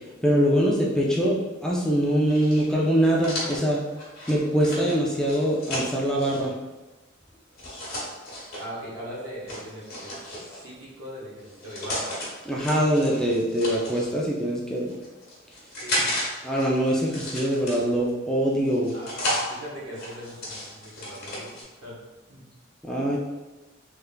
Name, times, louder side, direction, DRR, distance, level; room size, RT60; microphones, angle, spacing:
voice 1, 0.2-3.8 4.3-6.5 12.5-14.9 16.4-18.9 22.8-23.2, equal, 5° left, -4 dB, 0.3 m, -23 dB
sound 1, 2.3-6.4 7.6-8.6 9.5-10.7 11.4-12.3 12.6-14.1 14.8-16.3 16.6-18.1 18.7-19.5 19.9-21.6, left 1 dB, 50° left, 1.2 m, -33 dB
voice 2, 8.6-10.2 10.5-12.1 15.7-16.1 18.9-22.0 22.3-22.5, equal, 90° right, -5 dB, 1.1 m, -40 dB
3.4 x 3.2 x 2.2 m, 1.2 s
head